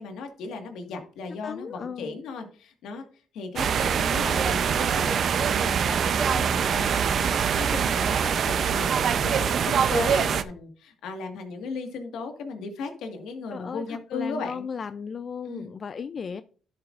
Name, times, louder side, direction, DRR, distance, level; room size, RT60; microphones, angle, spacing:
voice 1, 0.0-14.6 15.4-15.7, left 4 dB, 85° left, 4 dB, 1.7 m, -36 dB
voice 2, 1.4-2.1 13.5-16.4, left 6 dB, 45° left, 12 dB, 0.4 m, -35 dB
sound 1, 3.6-10.4, right 7 dB, 60° right, 0.6 m, -24 dB
11.5 x 7.8 x 2.5 m, 0.42 s
cardioid pair, 90°, 0 cm